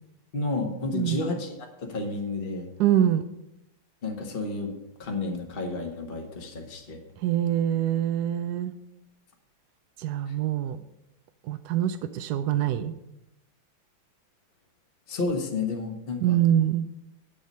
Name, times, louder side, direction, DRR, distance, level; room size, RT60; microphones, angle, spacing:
voice 1, 0.3-2.7 4.0-4.7 5.0-7.0 10.3-10.4 15.1-16.4, left 3 dB, 30° left, 3 dB, 1.3 m, -31 dB
voice 2, 2.8-3.2 7.2-8.7 10.0-10.8 11.5-12.9 16.2-16.8, right 11 dB, 75° right, 10 dB, 0.9 m, -24 dB
8.9 x 7.3 x 5.4 m, 0.86 s
omnidirectional pair, 2.2 m